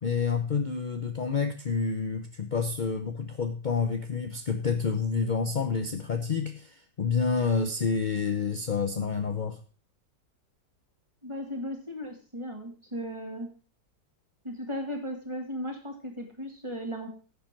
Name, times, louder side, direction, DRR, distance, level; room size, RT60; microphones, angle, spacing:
voice 1, 0.0-9.6, left 5 dB, 50° left, 7 dB, 0.5 m, -28 dB
voice 2, 11.2-13.5 14.4-17.1, equal, 15° right, 2 dB, 2.4 m, -36 dB
10.5 x 7.1 x 5.8 m, 0.38 s
omnidirectional pair, 1.9 m